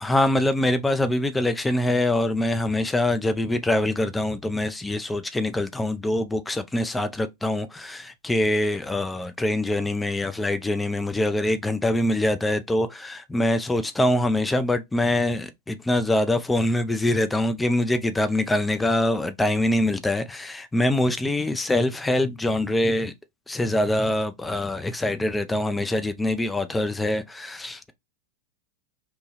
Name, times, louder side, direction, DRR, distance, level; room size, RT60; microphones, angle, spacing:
voice 1, 0.0-23.1 23.5-27.9, left 1 dB, 10° left, 0.4 m, -24 dB
2.9 x 2.2 x 3.0 m
figure-of-eight pair, 90°, 0 cm